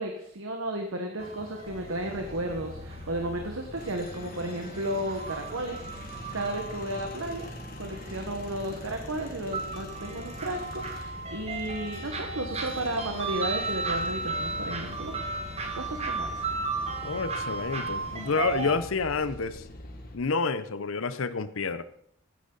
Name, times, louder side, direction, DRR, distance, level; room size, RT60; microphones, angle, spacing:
voice 1, 0.0-7.5 7.8-15.1 15.7-16.5, right 1 dB, 85° right, 3 dB, 1.4 m, -33 dB
sound 1, 1.2-18.7, right 3 dB, 30° right, 1.5 m, -36 dB
sound 2, 1.7-20.2, left 1 dB, 45° left, 1.8 m, -43 dB
voice 2, 17.0-19.7 20.1-21.8, left 4 dB, 80° left, 13 dB, 0.7 m, -29 dB
14.5 x 10.0 x 4.0 m, 0.69 s
head